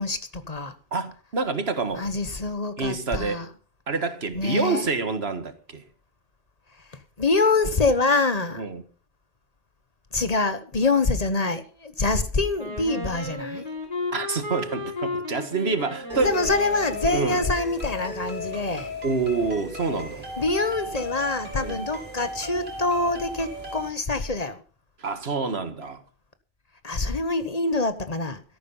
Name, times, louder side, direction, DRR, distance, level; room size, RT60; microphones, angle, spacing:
voice 1, 0.0-0.8 1.9-3.5 4.3-4.9 6.8-8.6 10.1-13.6 16.2-18.9 20.4-24.6 26.8-28.4, left 3 dB, 40° left, 1.2 m, -25 dB
voice 2, 0.9-2.0 2.8-3.5 3.9-5.8 8.6-8.8 14.1-16.3 17.1-17.4 19.0-20.3 21.6-21.8 25.0-26.0, right 4 dB, 85° right, 1.9 m, -27 dB
Wind instrument woodwind instrument, 12.6-17.6, left 2 dB, 20° right, 6.5 m, -34 dB
sound 1, 16.1-23.9, left 2 dB, 55° right, 3.8 m, -36 dB
13.5 x 11.0 x 5.5 m
omnidirectional pair, 1.0 m